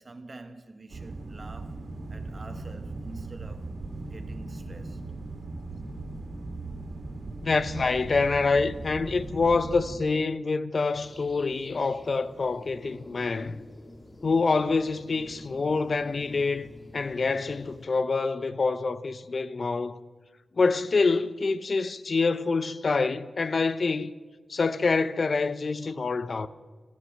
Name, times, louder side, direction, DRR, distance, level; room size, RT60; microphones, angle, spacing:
voice 1, 0.0-3.8 4.0-5.0, right 2 dB, 45° right, 1.5 m, -47 dB
sound 1, 0.9-10.0, right 2 dB, 65° right, 2.4 m, -38 dB
voice 2, 7.4-13.6 14.2-20.0 20.6-24.1 24.5-26.5, left 4 dB, 55° left, 0.7 m, -26 dB
sound 2, 10.9-17.9, left 1 dB, 30° left, 1.7 m, -49 dB
15.0 x 13.0 x 6.3 m
cardioid pair, 55°, 0 cm